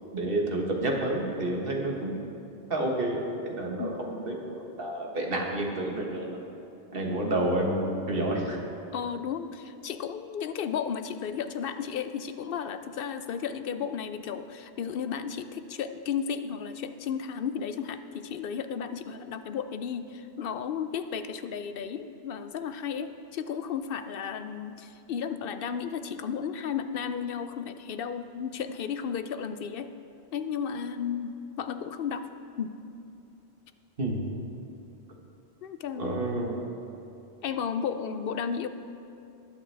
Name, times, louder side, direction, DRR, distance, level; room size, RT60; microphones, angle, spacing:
voice 1, 0.1-2.2 2.7-4.3 4.8-6.4 6.9-8.6 34.0-34.2 36.0-36.6, right 1 dB, 55° right, 0 dB, 1.7 m, -29 dB
voice 2, 8.9-29.9 30.3-32.3 32.6-32.8 35.6-36.2 37.4-38.7, left 7 dB, 60° left, 10 dB, 0.7 m, -34 dB
19.5 x 8.6 x 3.4 m, 2.7 s
omnidirectional pair, 1.1 m